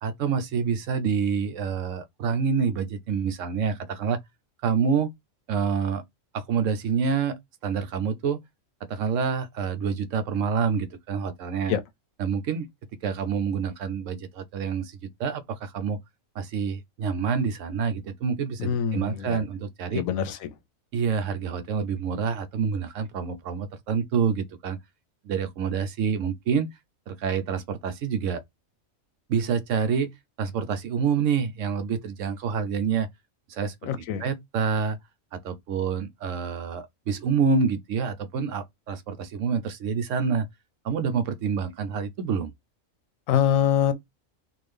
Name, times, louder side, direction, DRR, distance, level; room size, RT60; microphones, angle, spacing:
voice 1, 0.0-4.2 4.6-5.1 5.5-6.0 6.3-8.4 8.9-11.8 12.2-12.7 13.0-16.0 16.4-20.0 20.9-24.8 25.2-26.7 27.1-28.4 29.3-30.1 30.4-33.1 33.5-33.7 34.2-35.0 35.3-40.5 40.8-42.5, right 6 dB, 70° right, 1.0 m, -27 dB
voice 2, 18.6-19.4 19.9-20.5 33.8-34.2 43.3-43.9, left 9 dB, 90° left, 1.0 m, -24 dB
3.6 x 2.5 x 3.2 m
omnidirectional pair, 1.4 m